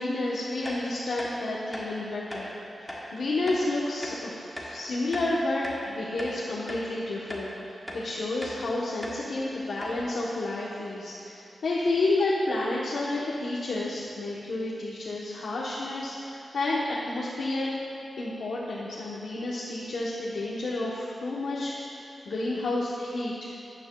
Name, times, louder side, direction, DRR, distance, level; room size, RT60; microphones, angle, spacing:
voice 1, 0.0-17.7 18.2-23.5, left 2 dB, 85° left, -6 dB, 1.0 m, -30 dB
sound 1, 0.6-0.8 1.2-1.3 1.7-1.9 2.3-2.4 2.9-3.0 3.5-3.6 4.0-4.2 4.6-4.7 5.1-5.8 6.2-6.3 6.7-6.8 7.3-7.5 7.9-8.0 8.4-8.6 9.0-9.2 9.5-9.6 9.8-10.0, left 1 dB, 5° left, 1.3 m, -38 dB
13.0 x 9.5 x 2.3 m, 2.7 s
wide cardioid pair, 145°, 0 cm